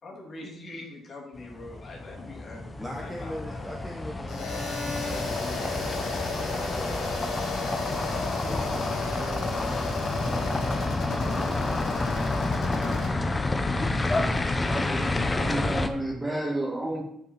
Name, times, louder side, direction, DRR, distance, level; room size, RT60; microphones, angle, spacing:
voice 1, 0.0-3.7 9.2-9.5, left 2 dB, 50° left, -2 dB, 2.4 m, -44 dB
sound 1, 1.4-15.9, left 2 dB, 25° left, 0.7 m, -29 dB
voice 2, 2.8-7.0 8.3-11.8, equal, 5° left, 0 dB, 1.1 m, -42 dB
sound 2, 4.3-13.1, left 3 dB, 65° left, 2.0 m, -33 dB
voice 3, 14.6-17.0, right 1 dB, 15° right, -1 dB, 2.1 m, -31 dB
5.8 x 4.7 x 5.9 m, 0.77 s
supercardioid pair, 65°, 0 cm